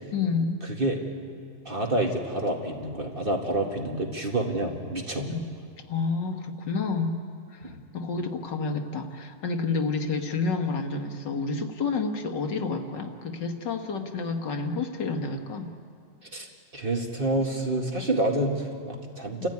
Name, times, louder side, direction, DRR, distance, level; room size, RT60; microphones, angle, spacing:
voice 1, 0.1-0.6 5.2-5.5 5.9-7.2 7.5-15.7 19.4-19.5, left 4 dB, 70° left, 5 dB, 2.1 m, -29 dB
voice 2, 1.7-5.3 7.6-7.8 16.3-19.5, right 1 dB, 30° right, 1 dB, 2.1 m, -28 dB
29.0 x 14.5 x 9.6 m, 2.2 s
omnidirectional pair, 2.0 m